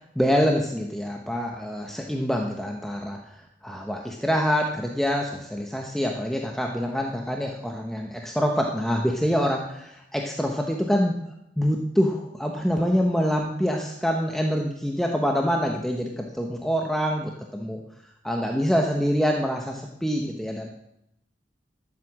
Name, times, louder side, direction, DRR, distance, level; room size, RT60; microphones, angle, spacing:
voice 1, 0.2-11.1 11.6-17.8 18.2-20.7, equal, ahead, 1 dB, 1.0 m, -25 dB
13.0 x 7.8 x 7.5 m, 0.81 s
head